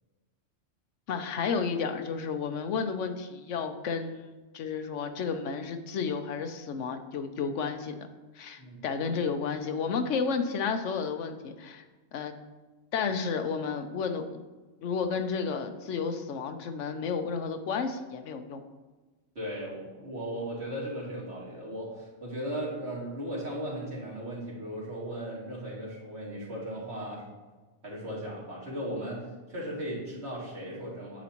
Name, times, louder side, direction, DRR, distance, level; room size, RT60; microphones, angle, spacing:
voice 1, 1.1-8.0 8.4-11.8 12.1-12.3 12.9-14.4 14.8-18.6, left 5 dB, 85° left, 8 dB, 1.1 m, -32 dB
voice 2, 19.3-27.3 27.8-31.2, right 1 dB, 60° right, -5 dB, 2.8 m, -37 dB
9.2 x 8.4 x 3.0 m, 1.2 s
omnidirectional pair, 1.2 m